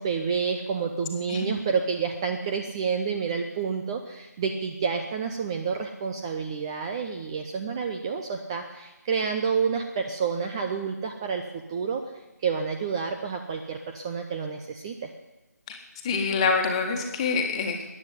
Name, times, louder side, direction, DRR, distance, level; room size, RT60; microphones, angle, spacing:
voice 1, 0.0-12.0 12.4-15.1, right 5 dB, 15° right, 4 dB, 0.6 m, -29 dB
voice 2, 16.0-17.9, left 5 dB, 20° left, 3 dB, 1.7 m, -26 dB
14.5 x 9.8 x 9.4 m, 1.0 s
figure-of-eight pair, 155°, 9 cm